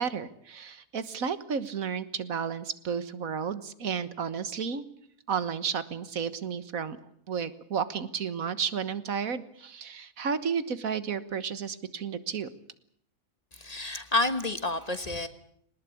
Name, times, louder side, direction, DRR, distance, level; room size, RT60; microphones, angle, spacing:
voice 1, 0.0-4.8 5.3-7.0 7.3-12.5, right 6 dB, 85° right, 12 dB, 1.8 m, -32 dB
voice 2, 13.5-15.3, left 2 dB, 30° left, 9 dB, 1.5 m, -29 dB
22.0 x 19.5 x 8.6 m, 0.69 s
omnidirectional pair, 1.4 m